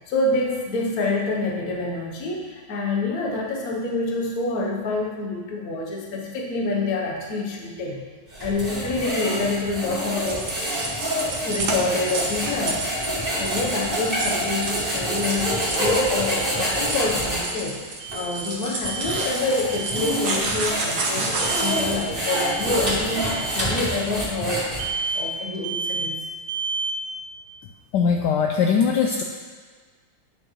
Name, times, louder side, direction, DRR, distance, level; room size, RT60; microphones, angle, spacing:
voice 1, 0.1-8.0 8.4-10.5 11.4-12.8 13.4-17.8 18.1-24.7 25.1-26.2, left 2 dB, 50° left, -1 dB, 1.3 m, -27 dB
sound 1, 8.3-17.5 18.1-18.2 18.8-25.1, equal, 25° right, 2.2 m, -27 dB
sound 2, 10.2-24.3, right 3 dB, 55° right, 1.4 m, -31 dB
Alarm, 15.4-15.9 16.3-16.7 18.0-18.5 18.8-19.3 19.7-20.2 21.4-21.9 22.2-22.7 23.1-23.5 24.8-25.3 25.6-26.1 26.5-27.0, right 4 dB, 85° right, 0.6 m, -31 dB
voice 2, 27.9-29.2, left 6 dB, 75° left, 1 dB, 1.0 m, -20 dB
10.0 x 6.2 x 3.1 m, 1.5 s
omnidirectional pair, 2.3 m